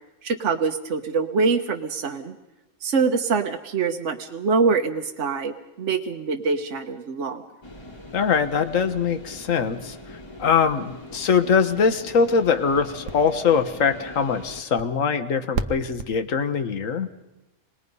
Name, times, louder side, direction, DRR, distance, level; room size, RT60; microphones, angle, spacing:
voice 1, 0.2-2.4 2.8-7.4, right 4 dB, 65° right, 4 dB, 1.4 m, -24 dB
sound 1, 7.6-14.6, left 2 dB, 20° left, 1.4 m, -42 dB
voice 2, 8.1-17.1, left 6 dB, 85° left, 8 dB, 1.6 m, -22 dB
sound 2, 11.6-16.5, right 5 dB, 80° right, 1.4 m, -36 dB
27.5 x 21.0 x 5.5 m, 0.98 s
omnidirectional pair, 1.3 m